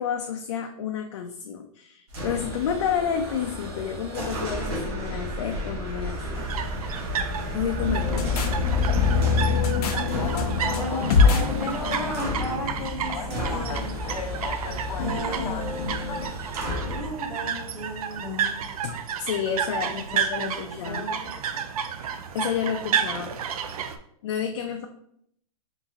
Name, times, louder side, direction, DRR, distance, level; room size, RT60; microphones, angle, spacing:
voice 1, 0.0-6.4 7.5-8.6 18.5-21.1 22.3-23.4 24.2-24.9, left 7 dB, 50° left, 4 dB, 0.4 m, -30 dB
sound 1, 2.1-17.1, equal, 45° right, 1.3 m, -33 dB
sound 2, 6.4-24.0, right 7 dB, 75° right, 0.5 m, -32 dB
sound 3, 7.8-16.3, left 5 dB, 90° left, 0.8 m, -25 dB
voice 2, 10.8-13.9 15.0-15.9 16.8-18.5 19.8-21.4, left 1 dB, ahead, -4 dB, 0.5 m, -35 dB
4.1 x 2.6 x 3.7 m, 0.70 s
supercardioid pair, 175°, 19 cm